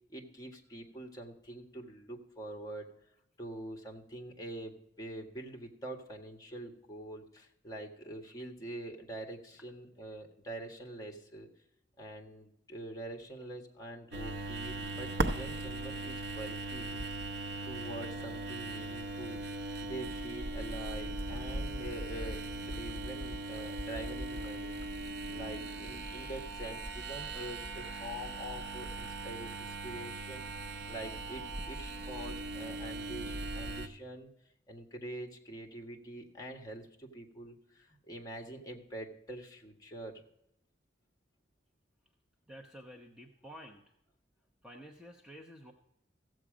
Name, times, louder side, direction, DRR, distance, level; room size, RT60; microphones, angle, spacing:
voice 1, 0.1-2.9 3.4-11.5 12.0-17.0 17.3-19.4 19.8-24.8 25.3-30.5 30.8-34.3 34.7-40.2, right 1 dB, 20° left, 2 dB, 1.6 m, -45 dB
sound 1, 14.1-33.9, right 2 dB, 60° right, 0.8 m, -39 dB
voice 2, 42.5-43.8 44.6-45.7, equal, 5° right, 0 dB, 0.8 m, -50 dB
15.5 x 7.6 x 5.1 m, 0.80 s
head